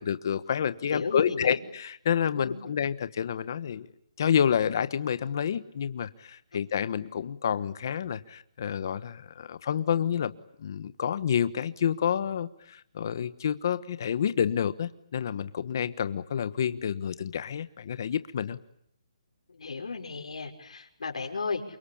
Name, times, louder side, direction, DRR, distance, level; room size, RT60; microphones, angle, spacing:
voice 1, 0.0-3.9 4.2-18.6, left 8 dB, 35° left, 14 dB, 1.2 m, -29 dB
voice 2, 0.9-1.6 2.3-2.6 19.5-21.6, left 4 dB, 75° left, 3 dB, 5.6 m, -34 dB
28.5 x 24.0 x 8.7 m, 0.75 s
hypercardioid pair, 175°, 3 cm